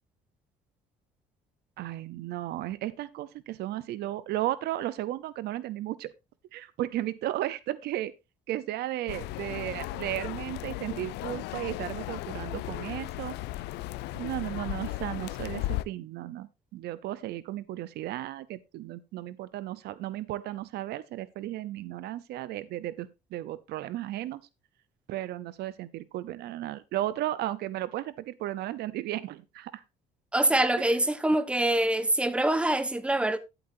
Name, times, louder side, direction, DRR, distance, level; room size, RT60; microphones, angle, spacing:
voice 1, 1.8-6.1 6.5-8.1 8.5-13.4 14.1-24.4 25.1-29.8 30.8-30.9, right 14 dB, 75° right, 0.7 m, -34 dB
sound 1, 9.1-15.8, left 17 dB, 85° left, 0.6 m, -36 dB
voice 2, 30.3-33.4, right 1 dB, 5° right, 1.1 m, -25 dB
13.5 x 8.1 x 2.7 m
cardioid pair, 110°, 17 cm